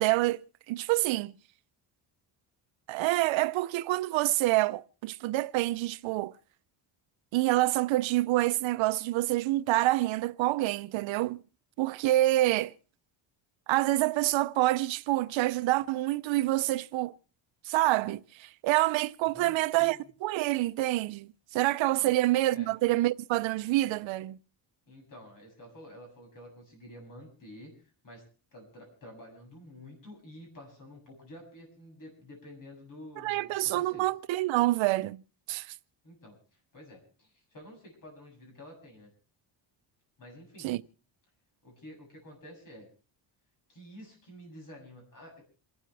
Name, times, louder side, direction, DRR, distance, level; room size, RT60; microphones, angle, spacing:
voice 1, 0.0-1.3 2.9-6.3 7.3-11.4 11.8-12.7 13.7-17.1 17.7-24.4 33.2-35.2 35.5-35.7 40.6-40.8, right 17 dB, 75° right, 0.7 m, -27 dB
voice 2, 24.9-27.7 28.0-28.2 28.5-34.1 36.0-36.4 36.7-39.1 40.2-40.7 41.6-42.9 43.7-45.5, left 1 dB, 45° left, 7.6 m, -50 dB
27.5 x 12.5 x 3.4 m
cardioid pair, 150°, 47 cm